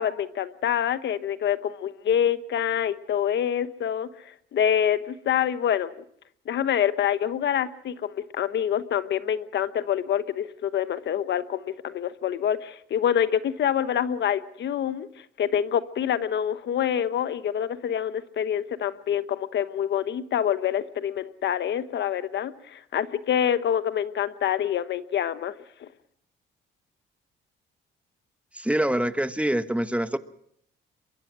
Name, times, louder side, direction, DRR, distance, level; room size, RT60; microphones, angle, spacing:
voice 1, 0.0-5.9 6.5-25.5 25.8-25.9, left 9 dB, 65° left, 13 dB, 1.1 m, -26 dB
voice 2, 28.5-30.2, right 1 dB, 5° right, 11 dB, 1.1 m, -25 dB
23.5 x 23.0 x 6.1 m, 0.69 s
cardioid pair, 90°, 20 cm